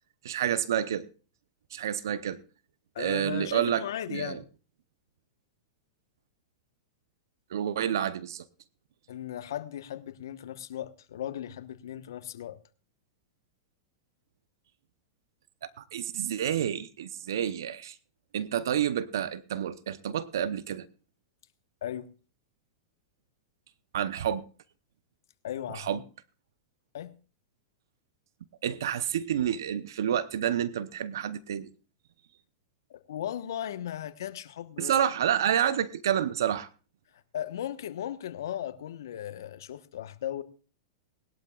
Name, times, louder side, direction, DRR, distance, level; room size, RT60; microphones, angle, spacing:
voice 1, 0.2-1.0 1.7-2.4 3.0-4.4 7.5-8.5 15.6-18.0 18.3-20.8 23.9-24.4 25.7-26.0 28.6-31.7 34.8-36.7, right 9 dB, 75° right, 0.8 m, -29 dB
voice 2, 2.9-4.4 9.1-12.6 21.8-22.1 25.4-26.0 26.9-27.1 32.9-34.9 37.3-40.4, left 11 dB, 75° left, 1.2 m, -37 dB
20.5 x 12.0 x 2.4 m
hypercardioid pair, 115°, 2 cm